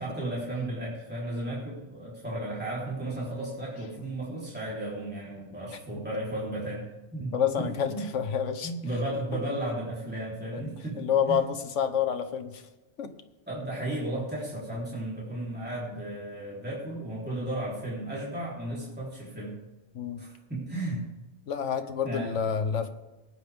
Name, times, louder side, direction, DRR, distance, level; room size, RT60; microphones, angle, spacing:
voice 1, 0.0-8.1 8.6-11.4 13.5-19.6 20.2-21.0 22.0-22.5, right 1 dB, 10° right, -7 dB, 3.5 m, -34 dB
voice 2, 7.3-8.7 9.3-9.4 10.5-10.6 11.0-12.6 13.0-13.1 19.9-20.3 21.5-22.9, left 8 dB, 90° left, 9 dB, 1.3 m, -28 dB
19.0 x 9.6 x 3.5 m, 1.1 s
omnidirectional pair, 1.2 m